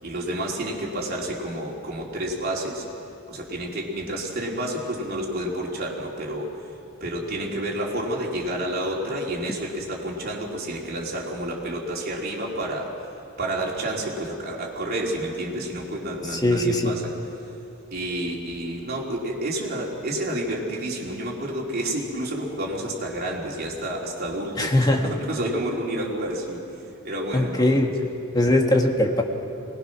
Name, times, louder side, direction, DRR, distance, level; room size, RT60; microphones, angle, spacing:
voice 1, 0.0-2.9 3.3-6.5 7.0-12.9 13.4-17.1 17.9-26.6 27.0-27.9, right 1 dB, 50° right, -3 dB, 3.6 m, -29 dB
voice 2, 16.4-16.9 24.6-25.0 27.3-27.9 28.3-29.2, left 1 dB, 20° left, 2 dB, 1.7 m, -20 dB
24.5 x 20.0 x 6.2 m, 2.7 s
head